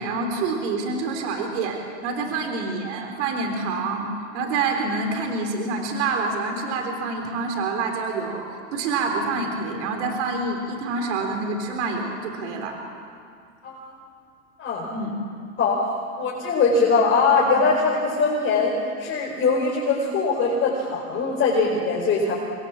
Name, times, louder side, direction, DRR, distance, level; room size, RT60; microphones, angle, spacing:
voice 1, 0.0-4.1 4.3-8.4 8.7-12.8 14.9-15.1, right 3 dB, 70° right, 3 dB, 3.8 m, -27 dB
voice 2, 15.6-22.3, left 4 dB, 35° left, -3 dB, 4.7 m, -22 dB
26.5 x 21.0 x 7.3 m, 2.2 s
supercardioid pair, 115°, 36 cm